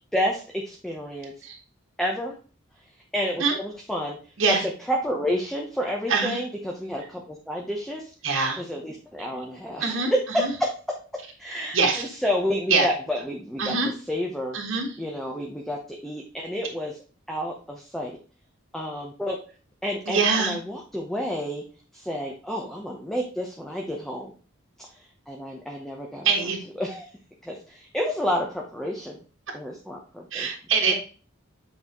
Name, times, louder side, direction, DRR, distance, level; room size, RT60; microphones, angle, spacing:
voice 1, 0.1-1.3 2.0-2.4 3.1-4.2 4.5-4.6 4.9-8.1 8.6-11.0 11.4-14.6 15.0-17.0 17.3-18.2 18.7-19.4 19.8-21.6 21.9-24.3 24.8-24.9 25.3-27.1 27.4-29.2 29.5-30.5 30.9-31.0, equal, ahead, 0 dB, 0.7 m, -30 dB
voice 2, 6.1-6.4 8.2-8.6 9.8-10.5 11.7-12.0 12.7-12.9 13.6-13.9 14.5-14.9 20.1-20.6 26.2-26.6 30.3-30.9, right 4 dB, 85° right, 0 dB, 1.4 m, -23 dB
7.8 x 4.0 x 3.0 m, 0.38 s
head